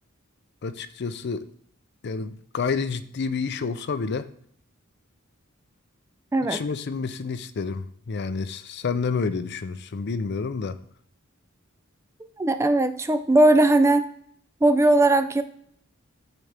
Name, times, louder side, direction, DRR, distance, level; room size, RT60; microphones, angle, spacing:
voice 1, 0.6-1.4 2.0-4.3 6.5-10.8, left 5 dB, 55° left, 12 dB, 0.5 m, -29 dB
voice 2, 6.3-6.6 12.4-14.0 14.6-15.4, right 2 dB, 15° right, 10 dB, 0.4 m, -19 dB
12.5 x 4.2 x 3.3 m, 0.65 s
head